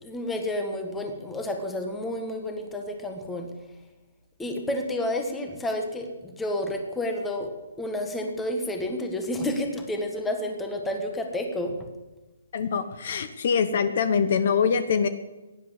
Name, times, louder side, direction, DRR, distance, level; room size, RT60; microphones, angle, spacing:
voice 1, 0.0-3.5 4.4-7.5 7.8-11.9, left 1 dB, 5° left, 4 dB, 1.5 m, -30 dB
voice 2, 12.5-15.1, left 6 dB, 45° left, 11 dB, 1.0 m, -24 dB
17.0 x 10.5 x 8.1 m, 1.1 s
hypercardioid pair, 170°, 0 cm